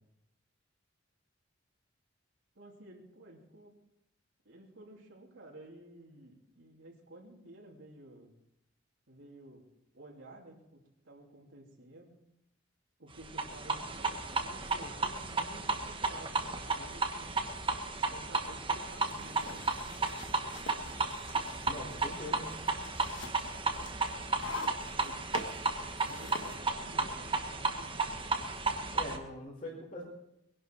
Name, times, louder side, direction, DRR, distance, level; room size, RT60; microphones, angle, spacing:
voice 1, 2.5-3.7 4.4-8.3 9.1-9.6 9.9-12.1 13.0-17.4 18.1-19.6 25.0-25.2 26.0-28.5, right 1 dB, 75° right, -2 dB, 3.0 m, -53 dB
sound 1, 13.3-29.2, right 3 dB, 25° right, 1.3 m, -34 dB
sound 2, 18.8-26.6, left 3 dB, 70° left, 1.4 m, -46 dB
voice 2, 21.6-22.6 28.9-30.0, left 1 dB, 35° left, -7 dB, 4.6 m, -42 dB
21.5 x 11.5 x 4.7 m, 0.84 s
head